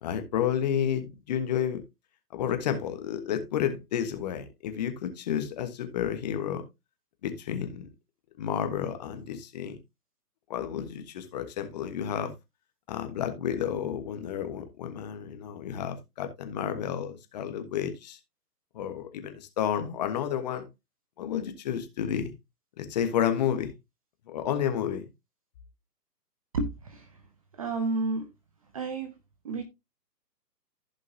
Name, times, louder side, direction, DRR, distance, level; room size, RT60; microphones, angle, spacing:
voice 1, 0.0-1.8 2.3-6.7 7.2-7.9 8.4-9.8 10.5-12.3 12.9-18.2 18.7-20.7 21.2-22.3 22.8-23.7 24.3-25.0, left 9 dB, 25° left, 1.3 m, -31 dB
voice 2, 26.5-27.1 27.5-28.3 28.7-29.1 29.4-29.6, right 3 dB, 20° right, 0.8 m, -30 dB
15.0 x 5.3 x 2.7 m
figure-of-eight pair, 140°, 49 cm